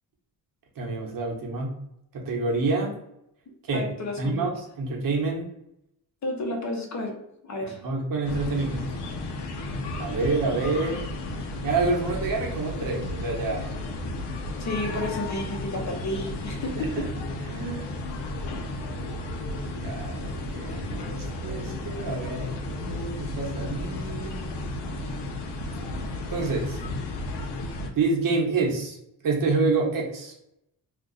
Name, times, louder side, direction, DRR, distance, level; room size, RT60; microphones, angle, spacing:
voice 1, 0.8-1.7 2.1-2.9 3.7-3.9 4.2-5.5 7.8-8.8 10.0-11.0 11.6-13.7 16.8-17.1 17.5-17.8 19.8-22.5 22.8-24.3 25.8-25.9 26.3-26.8 27.9-29.0 29.2-30.3, right 3 dB, 55° right, 0 dB, 1.0 m, -27 dB
voice 2, 3.7-4.4 6.2-7.1 7.4-7.8 14.6-17.1, left 1 dB, 45° left, 2 dB, 0.9 m, -31 dB
sound 1, 8.3-27.9, left 2 dB, 85° left, 0.7 m, -33 dB
2.6 x 2.4 x 3.9 m, 0.81 s
cardioid pair, 115°, 40 cm